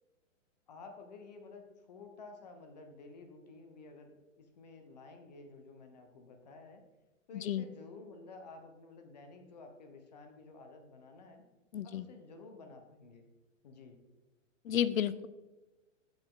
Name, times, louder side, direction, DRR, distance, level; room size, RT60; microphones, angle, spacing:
voice 1, 0.7-6.8 7.3-11.4 11.8-13.2 13.6-14.0, left 3 dB, 30° left, 5 dB, 1.0 m, -52 dB
voice 2, 7.3-7.6 11.7-12.1 14.6-15.3, left 10 dB, 85° left, 16 dB, 0.7 m, -32 dB
7.9 x 7.3 x 3.7 m, 1.1 s
hypercardioid pair, 175°, 39 cm